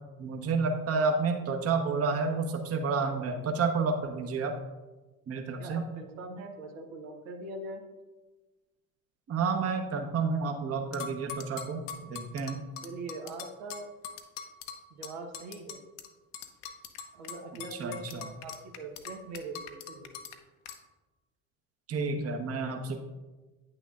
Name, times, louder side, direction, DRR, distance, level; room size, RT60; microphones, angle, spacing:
voice 1, 0.2-4.5 5.3-5.8 9.3-11.8 12.1-12.6 17.7-18.3 21.9-23.0, right 4 dB, 35° right, 4 dB, 0.9 m, -30 dB
voice 2, 5.6-7.8 12.8-13.9 14.9-15.8 17.1-20.1, right 2 dB, 70° right, 3 dB, 1.0 m, -42 dB
sound 1, 10.9-16.1 16.3-20.3 20.7-20.8, left 7 dB, 65° left, 0.8 m, -42 dB
9.0 x 6.4 x 2.5 m, 1.2 s
hypercardioid pair, 60°, 44 cm